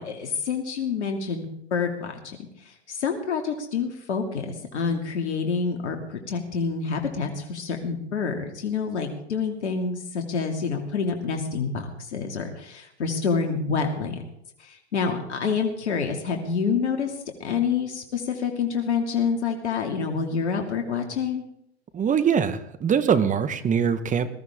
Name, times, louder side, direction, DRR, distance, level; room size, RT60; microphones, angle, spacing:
voice 1, 0.0-2.4 2.9-14.1 14.6-17.1 17.4-21.4, left 5 dB, 85° left, 3 dB, 2.6 m, -27 dB
voice 2, 21.9-24.3, right 7 dB, 25° right, 12 dB, 1.4 m, -22 dB
21.0 x 14.0 x 3.7 m, 0.74 s
hypercardioid pair, 105°, 33 cm